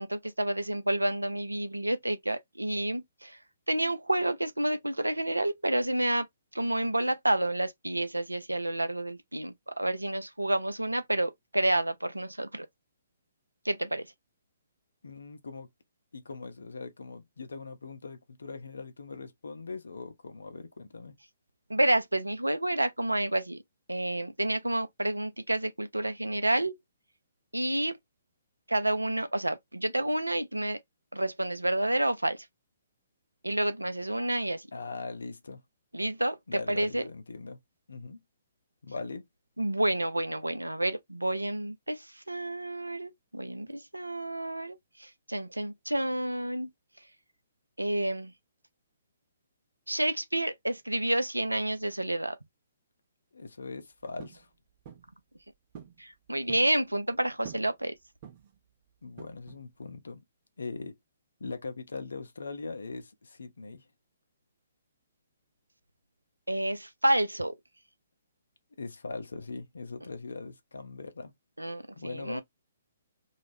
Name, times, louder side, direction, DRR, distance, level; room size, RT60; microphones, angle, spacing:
voice 1, 0.0-3.4 3.7-6.3 6.5-12.7 13.6-14.1 21.7-23.6 23.9-26.7 27.5-27.9 28.7-30.8 31.1-32.5 33.4-34.7 35.9-37.0 39.6-46.7 47.8-48.3 49.9-52.4 56.0-57.9 66.5-67.5 71.6-72.4, right 1 dB, 85° right, 0.4 m, -29 dB
voice 2, 15.0-15.7 16.1-21.2 34.7-35.6 36.5-37.6 37.9-38.2 38.8-39.3 53.3-54.5 59.0-60.2 60.6-60.9 61.4-63.9 68.8-71.3 72.0-72.4, left 4 dB, 65° left, 0.6 m, -41 dB
sound 1, 54.2-54.4 54.9-55.1 55.7-56.0 56.3-56.7 57.4-57.7 58.2-58.6 59.2-59.7, right 8 dB, 35° right, 0.5 m, -47 dB
2.3 x 2.0 x 3.2 m
figure-of-eight pair, 125°, 0 cm